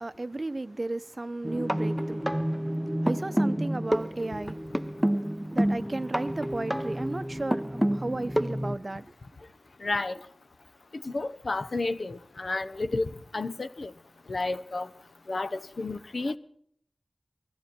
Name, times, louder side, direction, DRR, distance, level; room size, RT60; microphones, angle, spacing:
voice 1, 0.0-2.4 3.0-4.6 5.5-9.0, right 2 dB, 35° right, 0.8 m, -34 dB
sound 1, 1.4-8.8, equal, 5° right, 0.7 m, -29 dB
voice 2, 9.8-10.2 11.0-13.9 14.3-14.9 15.3-16.4, left 2 dB, 65° left, 1.1 m, -31 dB
21.0 x 14.0 x 4.4 m
wide cardioid pair, 75°, 0 cm